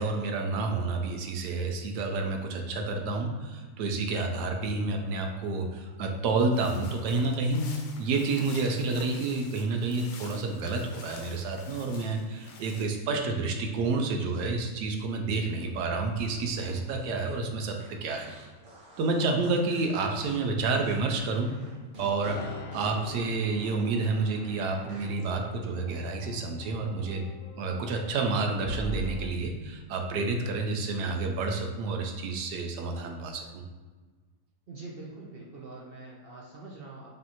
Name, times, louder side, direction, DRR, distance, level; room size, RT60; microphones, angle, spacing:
voice 1, 0.0-7.7 8.0-17.8 18.0-18.3 19.0-21.5 22.0-27.2 27.6-33.6, right 3 dB, 85° right, 3 dB, 1.2 m, -29 dB
sound 1, 6.5-12.9, left 5 dB, 80° left, 1.2 m, -48 dB
sound 2, 15.7-25.3, right 1 dB, 40° right, 0.9 m, -51 dB
sound 3, 22.2-29.3, equal, 60° left, 0.5 m, -42 dB
voice 2, 34.7-37.1, right 3 dB, 60° right, -3 dB, 0.6 m, -44 dB
5.3 x 2.7 x 2.8 m, 1.4 s
omnidirectional pair, 1.7 m